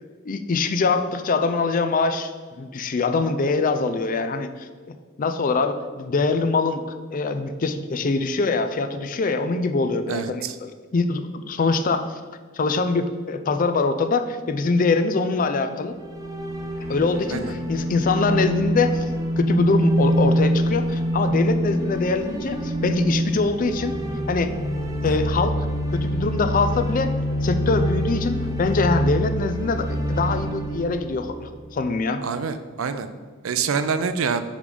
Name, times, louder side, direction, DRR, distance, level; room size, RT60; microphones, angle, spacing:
voice 1, 0.3-2.3 2.6-4.7 5.2-6.8 7.1-12.2 12.5-15.9 16.9-19.0 19.4-24.0 24.3-24.5 25.0-25.5 25.9-27.1 27.4-32.2, left 3 dB, 40° left, 9 dB, 0.4 m, -23 dB
voice 2, 10.1-10.5 17.3-17.5 25.0-25.2 32.2-33.1 33.4-34.4, right 6 dB, 80° right, 10 dB, 0.5 m, -26 dB
sound 1, 15.9-32.0, equal, 15° right, 0.7 m, -25 dB
5.1 x 5.0 x 5.3 m, 1.5 s
head